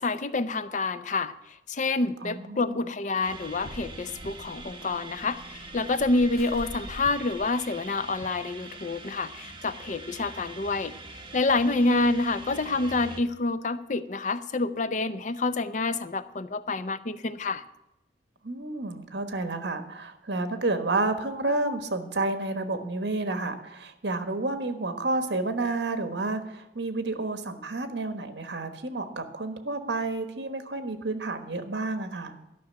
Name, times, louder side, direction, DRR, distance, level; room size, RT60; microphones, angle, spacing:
voice 1, 0.0-1.3 1.7-10.9 11.3-17.6, left 3 dB, 45° left, 13 dB, 0.6 m, -28 dB
voice 2, 2.2-2.8 18.4-32.4, right 2 dB, 70° right, 8 dB, 1.3 m, -30 dB
sound 1, 3.2-13.2, right 3 dB, 30° right, 1.3 m, -44 dB
sound 2, 3.4-8.2, equal, 60° left, 1.3 m, -45 dB
12.5 x 6.2 x 8.6 m, 0.89 s
head